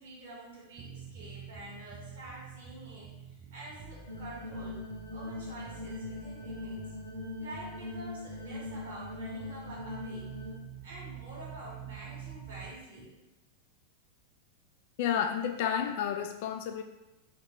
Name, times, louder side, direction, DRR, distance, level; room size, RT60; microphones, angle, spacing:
voice 1, 0.0-4.8 5.1-6.9 7.4-10.3 10.8-13.3, right 1 dB, 55° right, -6 dB, 1.0 m, -47 dB
sound 1, 0.8-12.7, right 7 dB, 25° right, 0.5 m, -47 dB
sound 2, 4.1-10.5, left 2 dB, 85° right, 0.7 m, -41 dB
voice 2, 15.0-16.8, left 8 dB, 50° left, 6 dB, 0.3 m, -31 dB
3.0 x 2.5 x 2.9 m, 0.98 s
figure-of-eight pair, 90°, 0 cm